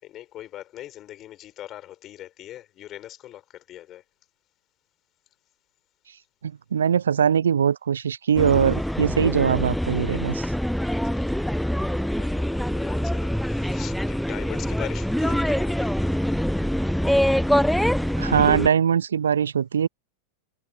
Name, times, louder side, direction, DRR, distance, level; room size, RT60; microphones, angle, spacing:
voice 1, 0.0-4.0 11.1-11.6 11.9-15.9, left 13 dB, 30° left, 4.5 m, -41 dB
voice 2, 6.4-10.5 18.2-19.9, right 8 dB, 70° right, 0.7 m, -21 dB
sound 1, 8.4-18.7, equal, ahead, 0.3 m, -24 dB
figure-of-eight pair, 90°, 0 cm